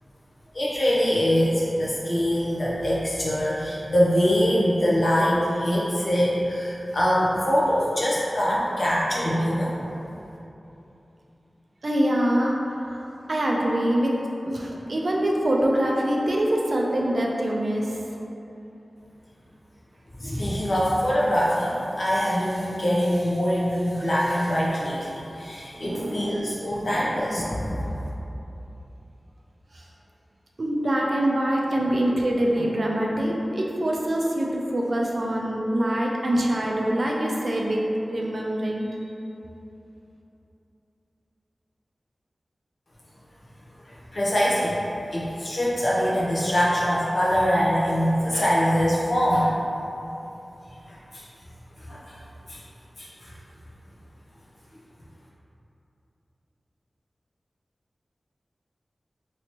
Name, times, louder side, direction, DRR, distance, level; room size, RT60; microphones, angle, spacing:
voice 1, 0.5-9.9 20.1-27.9 43.8-44.8 45.1-49.5 50.9-51.3 51.8-52.2 52.5-52.6 53.0-53.3, equal, 60° left, -7 dB, 0.8 m, -23 dB
voice 2, 11.8-14.1 14.5-18.0 25.7-26.3 26.8-27.1 29.7-29.8 30.6-39.0, right 1 dB, 65° right, -2 dB, 0.4 m, -24 dB
3.0 x 2.8 x 2.9 m, 2.9 s
cardioid pair, 40°, 0 cm